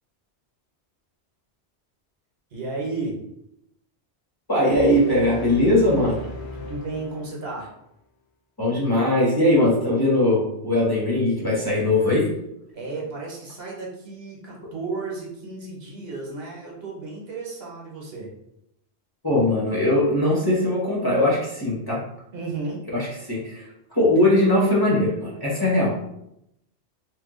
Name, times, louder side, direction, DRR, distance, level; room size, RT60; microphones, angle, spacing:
voice 1, 2.5-3.2 6.5-7.7 12.7-18.3 22.3-22.8, right 3 dB, 65° right, -3 dB, 1.1 m, -33 dB
voice 2, 4.5-6.2 8.6-12.3 19.2-22.0 22.9-23.6 23.9-25.9, left 1 dB, 20° left, -7 dB, 0.8 m, -20 dB
sound 1, 4.7-7.7, left 2 dB, 75° left, 0.9 m, -38 dB
3.0 x 2.2 x 3.6 m, 0.81 s
omnidirectional pair, 1.1 m